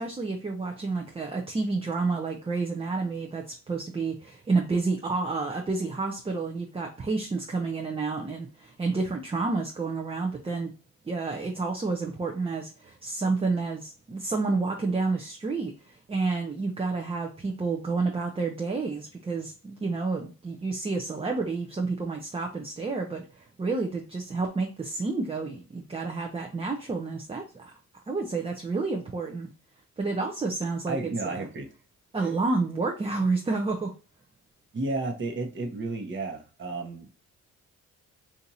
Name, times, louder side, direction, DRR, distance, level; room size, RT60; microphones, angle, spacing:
voice 1, 0.0-10.7 11.0-27.7 28.1-29.5 30.0-31.5 32.1-33.9, right 3 dB, 20° right, 2 dB, 0.5 m, -30 dB
voice 2, 30.9-31.7 32.2-32.3 34.7-37.1, right 2 dB, 40° right, 3 dB, 0.9 m, -32 dB
2.8 x 2.5 x 4.0 m, 0.35 s
cardioid pair, 90°, 30 cm